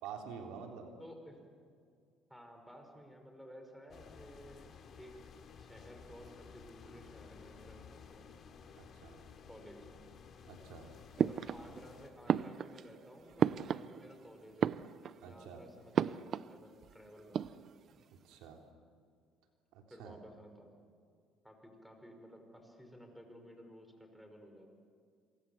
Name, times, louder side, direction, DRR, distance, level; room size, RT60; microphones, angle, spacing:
voice 1, 0.0-0.9 8.7-9.2 10.5-10.9 15.2-15.6 18.2-18.6 19.7-20.2, right 7 dB, 80° right, 3 dB, 3.5 m, -48 dB
voice 2, 1.0-1.5 2.3-7.9 8.1-8.3 9.5-9.9 11.2-14.7 15.2-17.7 19.9-20.8 21.4-24.7, equal, ahead, 4 dB, 5.5 m, -55 dB
sound 1, 3.9-12.1, left 6 dB, 50° left, 2.9 m, -55 dB
sound 2, 11.2-11.9 12.3-14.2 14.5-15.3 15.9-16.6 16.8-16.9 17.2-17.9, right 8 dB, 50° right, 0.6 m, -34 dB
27.5 x 25.0 x 7.3 m, 2.2 s
supercardioid pair, 95°, 0 cm